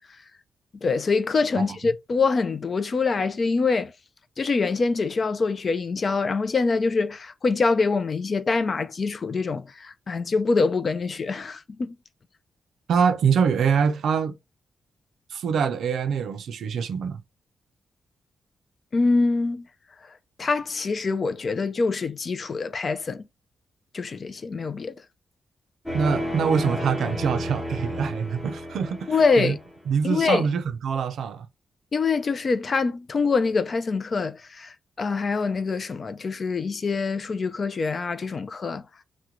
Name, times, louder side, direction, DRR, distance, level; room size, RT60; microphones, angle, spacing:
voice 1, 0.8-3.9 4.4-12.0 18.9-19.7 20.0-23.2 23.9-25.0 29.1-29.6 30.0-30.5 31.9-38.9, left 4 dB, 40° left, 0.3 m, -25 dB
voice 2, 12.9-14.3 15.3-17.2 25.9-29.6 29.9-31.5, right 6 dB, 75° right, 0.4 m, -24 dB
sound 1, 25.9-29.9, left 1 dB, 15° left, 0.9 m, -32 dB
3.0 x 2.1 x 3.7 m
wide cardioid pair, 125°, 0 cm